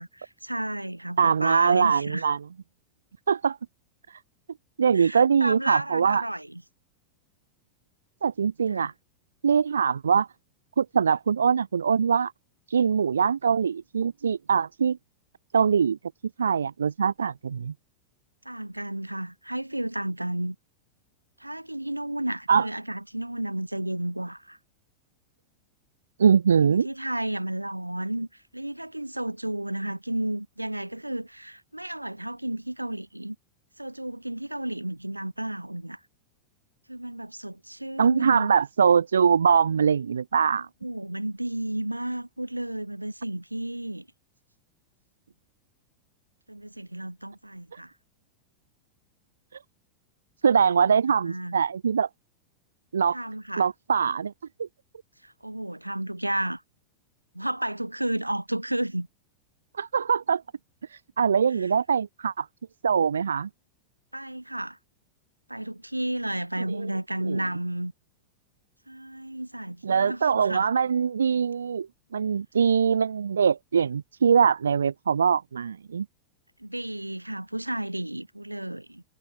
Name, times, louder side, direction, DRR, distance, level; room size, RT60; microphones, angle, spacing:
voice 1, 0.0-2.3 4.9-6.6 8.7-8.9 18.5-20.6 21.4-24.6 26.6-28.3 28.5-33.4 33.8-36.0 36.9-38.6 40.8-44.1 46.5-47.9 51.2-51.6 53.1-53.7 55.2-56.6 57.3-59.1 61.6-61.7 64.1-64.8 65.5-67.9 68.9-70.7 76.6-79.0, right 1 dB, 85° right, 1.9 m, -32 dB
voice 2, 1.2-2.4 3.3-3.6 4.1-4.2 4.8-6.2 8.2-8.9 9.4-10.3 10.8-12.3 12.7-15.0 15.5-16.0 16.4-17.7 22.5-22.7 26.2-26.9 38.0-40.7 50.4-52.1 52.9-53.2 53.6-54.3 54.6-54.7 59.8-60.4 60.9-62.5 62.8-63.5 66.7-66.9 67.3-67.4 69.8-71.9 72.1-76.1, right 6 dB, 70° right, 0.8 m, -23 dB
figure-of-eight pair, 90°, 0 cm